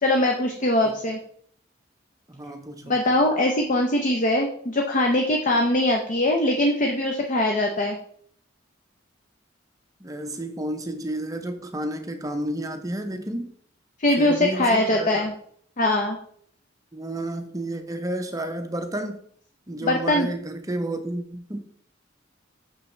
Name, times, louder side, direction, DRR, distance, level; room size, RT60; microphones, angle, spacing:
voice 1, 0.0-1.2 2.9-8.0 14.0-15.3 15.8-16.2 19.8-20.3, left 1 dB, 40° left, 0.7 m, -22 dB
voice 2, 2.3-3.2 10.0-13.5 14.2-15.3 16.9-19.2 19.7-21.6, right 1 dB, 20° right, 0.6 m, -31 dB
6.1 x 5.8 x 3.2 m
head